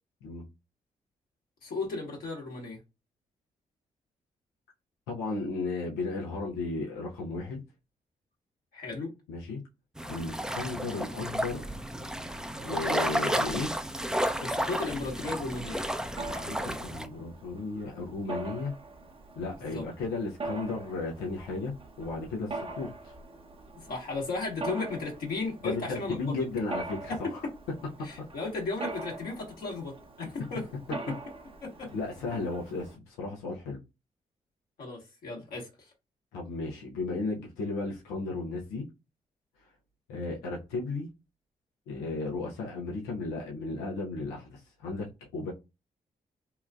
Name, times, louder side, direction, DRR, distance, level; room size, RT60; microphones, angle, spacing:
voice 1, 1.6-2.8 8.7-9.1 14.4-15.8 19.6-19.8 23.7-26.2 28.0-30.6 31.8-31.9 34.8-35.7, left 3 dB, 70° left, 1.4 m, -35 dB
voice 2, 5.1-7.6 9.3-9.6 10.1-11.9 12.6-13.8 16.1-18.7 19.4-23.1 25.6-27.4 31.9-33.8 36.3-38.9 40.1-41.1 41.9-45.5, left 3 dB, 90° left, 0.8 m, -35 dB
sound 1, 10.0-17.1, right 1 dB, 5° right, 0.5 m, -32 dB
Mechanisms, 16.2-32.9, right 2 dB, 35° right, 0.8 m, -43 dB
3.0 x 2.4 x 2.2 m
hypercardioid pair, 45°, 16 cm